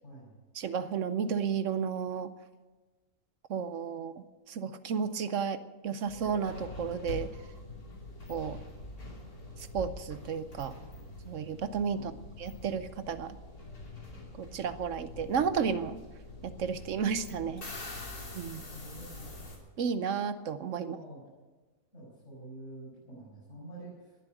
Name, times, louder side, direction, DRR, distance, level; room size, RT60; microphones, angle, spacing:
voice 1, 0.0-0.4 11.9-12.2 18.4-19.3 20.8-21.2 21.9-24.2, right 1 dB, 45° left, -8 dB, 6.7 m, -47 dB
voice 2, 0.6-2.3 3.5-7.3 8.3-8.6 9.7-10.7 11.3-13.4 14.4-16.0 16.4-17.6 18.3-18.6 19.8-21.0, right 6 dB, 60° right, 13 dB, 1.0 m, -33 dB
sound 1, 6.1-19.6, left 2 dB, 75° left, 3.6 m, -45 dB
20.0 x 7.6 x 9.1 m, 1.3 s
omnidirectional pair, 1.6 m